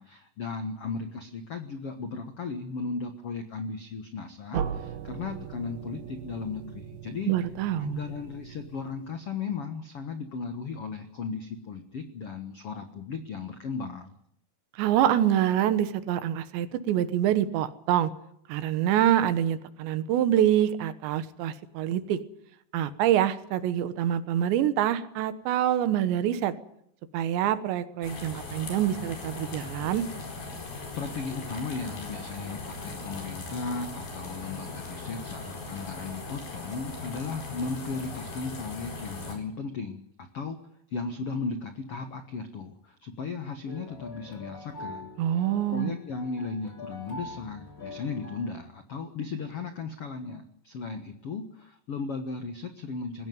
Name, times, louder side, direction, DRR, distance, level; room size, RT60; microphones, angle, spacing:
voice 1, 0.0-7.3 7.8-14.1 30.9-40.6 40.9-53.3, left 4 dB, 85° left, 7 dB, 1.3 m, -36 dB
sound 1, 4.5-9.3, right 8 dB, 65° right, 2.9 m, -38 dB
voice 2, 7.2-8.0 14.8-18.1 18.5-22.2 22.7-26.5 27.1-30.0 45.2-46.0, right 11 dB, 85° right, 12 dB, 3.5 m, -26 dB
sound 2, 28.0-39.4, left 3 dB, 60° left, 6.3 m, -39 dB
sound 3, 43.7-48.6, left 2 dB, 25° left, 2.6 m, -44 dB
20.5 x 16.5 x 9.4 m, 0.72 s
omnidirectional pair, 5.0 m